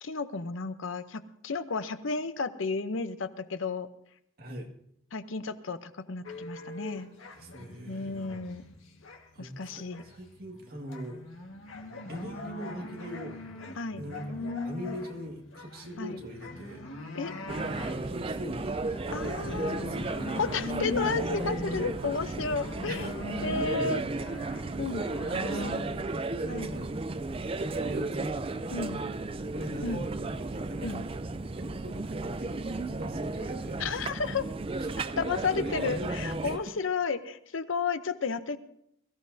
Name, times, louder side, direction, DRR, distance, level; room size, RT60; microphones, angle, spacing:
voice 1, 0.0-3.9 5.1-7.1 7.9-8.6 9.4-10.0 13.8-14.0 16.0-16.2 17.1-17.4 19.1-19.9 20.4-24.0 24.8-25.1 26.5-26.7 28.7-29.0 29.8-30.0 30.8-31.0 33.8-34.5 35.2-38.6, left 4 dB, 75° left, 11 dB, 0.7 m, -32 dB
voice 2, 4.4-4.7 6.9-7.1 7.3-8.4 9.3-11.2 12.1-13.4 14.0-16.8 17.9-21.2 22.9-23.1 23.7-24.1 25.3-27.2 27.6-28.9 29.5-31.1 31.5-33.9 34.8-35.2 35.6-36.7, equal, 50° right, 1 dB, 2.0 m, -42 dB
sound 1, 6.2-9.4 9.6-25.7, left 2 dB, 90° left, 1.6 m, -41 dB
sound 2, 17.5-36.6, right 3 dB, 30° right, 0.5 m, -34 dB
22.5 x 14.5 x 2.7 m, 0.74 s
head